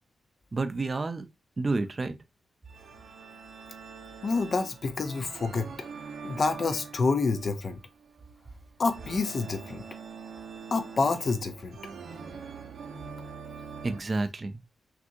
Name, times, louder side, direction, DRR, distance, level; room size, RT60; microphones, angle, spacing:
voice 1, 0.5-1.2 1.6-2.1 13.8-14.6, right 3 dB, 25° right, 0.4 m, -29 dB
sound 1, 2.7-14.0, right 5 dB, 85° right, 1.0 m, -44 dB
voice 2, 4.2-5.7 6.2-7.8 8.8-9.8 10.7-11.8, left 4 dB, 40° left, 0.5 m, -28 dB
5.9 x 2.7 x 2.6 m
wide cardioid pair, 170°, 0 cm